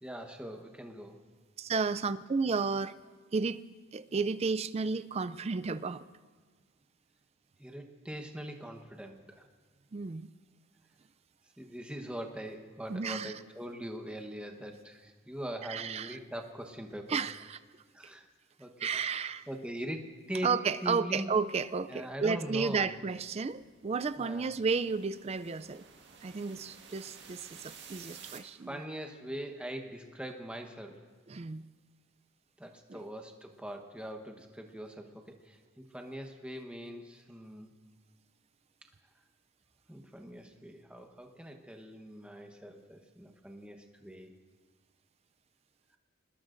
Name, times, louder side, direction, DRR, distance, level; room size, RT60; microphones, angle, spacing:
voice 1, 0.0-1.2 7.6-9.4 11.6-17.2 17.9-18.3 18.6-20.5 20.8-21.3 21.9-22.9 24.2-24.5 28.3-31.0 32.6-37.7 39.9-44.3, equal, 5° right, 4 dB, 1.0 m, -42 dB
voice 2, 1.6-2.9 3.3-3.6 3.9-6.0 9.9-10.3 12.9-13.4 15.7-16.2 17.1-17.6 18.8-19.4 20.4-25.8 26.2-28.8 31.3-31.6 32.9-33.0, right 5 dB, 30° right, 14 dB, 0.3 m, -32 dB
sound 1, 22.9-28.4, right 6 dB, 55° right, 1.8 m, -53 dB
26.5 x 20.5 x 2.6 m, 1.5 s
head